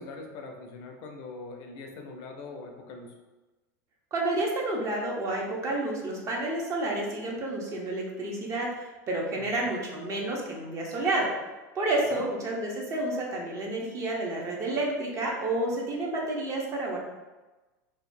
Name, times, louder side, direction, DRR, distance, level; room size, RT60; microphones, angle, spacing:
voice 1, 0.0-3.1 9.3-9.6 12.1-12.3, left 3 dB, 55° left, 3 dB, 0.4 m, -42 dB
voice 2, 4.1-11.3 11.7-17.0, right 2 dB, 35° right, -1 dB, 0.7 m, -30 dB
2.7 x 2.2 x 2.5 m, 1.2 s
hypercardioid pair, 110°, 9 cm